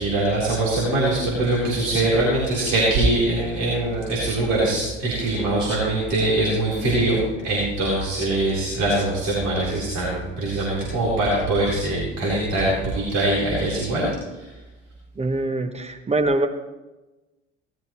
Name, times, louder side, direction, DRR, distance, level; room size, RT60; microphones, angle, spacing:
voice 1, 0.0-14.5, right 2 dB, 55° right, -6 dB, 4.1 m, -22 dB
voice 2, 15.2-16.5, right 2 dB, 20° right, 6 dB, 1.0 m, -23 dB
17.5 x 13.0 x 3.1 m, 1.1 s
figure-of-eight pair, 65°, 36 cm